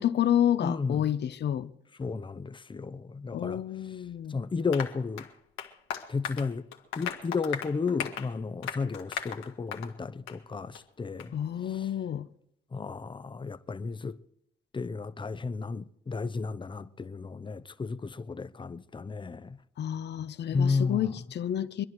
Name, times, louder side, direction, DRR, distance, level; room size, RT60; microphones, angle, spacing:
voice 1, 0.0-1.7 3.3-4.4 11.3-12.3 19.8-21.8, left 10 dB, 55° left, 1.0 m, -29 dB
voice 2, 0.6-1.1 2.0-4.0 4.3-5.3 6.1-6.7 6.9-11.4 11.6-11.9 12.7-14.2 14.7-19.6 20.5-21.2, left 4 dB, 25° left, 0.9 m, -33 dB
Applause, 4.7-9.9 10.3-10.4 10.7-10.8 11.2-11.3, left 8 dB, 85° left, 1.7 m, -38 dB
24.5 x 10.5 x 4.7 m
supercardioid pair, 70°, 20 cm